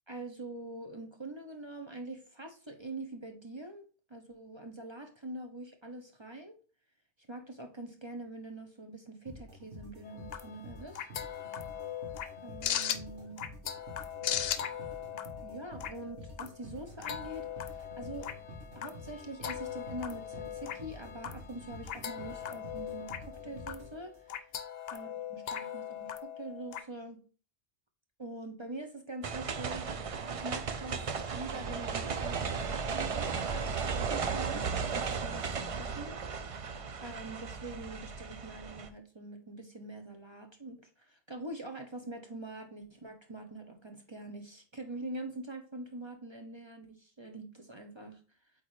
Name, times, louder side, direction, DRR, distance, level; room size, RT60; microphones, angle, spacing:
voice 1, 0.1-6.5 7.3-11.1 12.4-13.4 15.4-18.3 18.7-24.4 24.9-27.2 28.2-29.9 30.3-31.0 31.3-36.2 37.0-48.2, right 2 dB, 30° right, 4 dB, 0.8 m, -44 dB
sound 1, 9.3-24.5, equal, 80° right, 1.5 m, -49 dB
sound 2, 10.0-26.8, left 9 dB, 65° left, 0.8 m, -39 dB
sound 3, 29.2-38.9, right 5 dB, 50° right, 0.4 m, -35 dB
8.3 x 3.8 x 3.1 m, 0.37 s
omnidirectional pair, 1.1 m